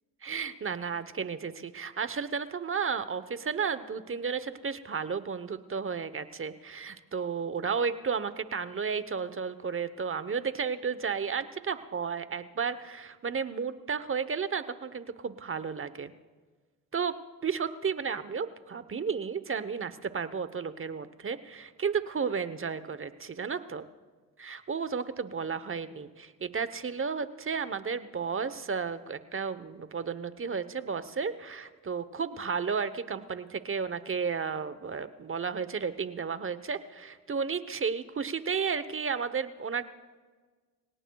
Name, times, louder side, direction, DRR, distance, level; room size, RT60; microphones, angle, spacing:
voice 1, 0.2-16.1 16.9-17.2 17.4-23.8 24.4-39.9, right 6 dB, 35° right, 13 dB, 0.9 m, -33 dB
26.0 x 17.5 x 2.3 m, 1.4 s
supercardioid pair, 65°, 39 cm